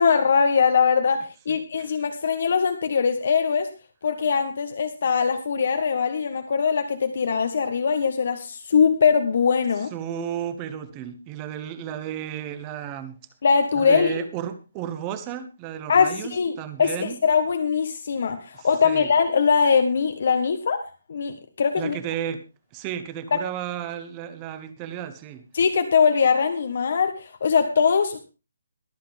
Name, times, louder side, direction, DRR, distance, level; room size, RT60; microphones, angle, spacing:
voice 1, 0.0-3.7 4.0-9.9 13.4-14.2 15.9-22.0 23.3-23.4 25.5-28.2, left 6 dB, 45° left, 7 dB, 1.3 m, -21 dB
voice 2, 1.5-1.9 9.9-13.2 13.7-17.2 18.5-19.1 21.8-22.4 22.7-25.4, right 9 dB, 15° right, 13 dB, 1.0 m, -33 dB
22.5 x 7.7 x 3.5 m, 0.29 s
hypercardioid pair, 175°, 0 cm